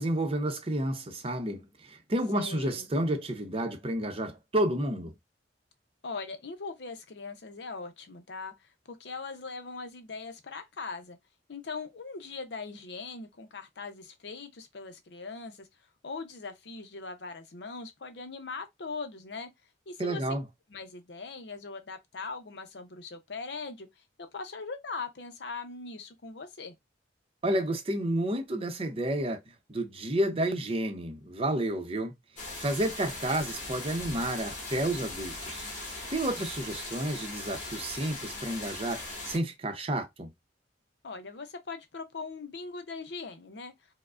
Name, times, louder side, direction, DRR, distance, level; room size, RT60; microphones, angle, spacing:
voice 1, 0.0-5.1 20.0-20.4 27.4-29.4 29.7-32.1 32.6-35.7 36.1-39.0 39.2-40.3, right 1 dB, 35° right, 0.6 m, -30 dB
voice 2, 2.3-2.9 6.0-11.2 11.5-15.7 16.0-19.5 19.9-20.2 20.7-26.8 41.0-43.7, left 4 dB, 70° left, 0.6 m, -40 dB
sound 1, 32.4-39.4, left 2 dB, 45° left, 1.5 m, -39 dB
4.7 x 2.1 x 2.4 m
head